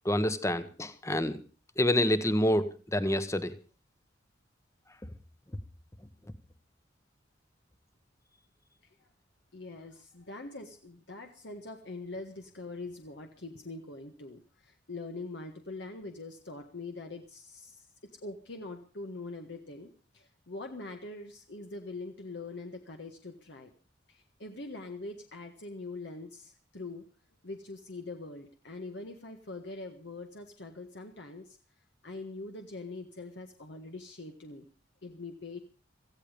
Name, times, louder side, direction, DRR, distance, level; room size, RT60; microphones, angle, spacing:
voice 1, 0.0-1.4 1.8-3.5, left 1 dB, 15° left, 13 dB, 1.2 m, -27 dB
voice 2, 9.5-23.7 24.1-27.1 27.4-31.6 32.0-34.6 35.0-35.6, left 2 dB, 65° left, 4 dB, 1.6 m, -43 dB
17.5 x 14.5 x 5.2 m, 0.36 s
head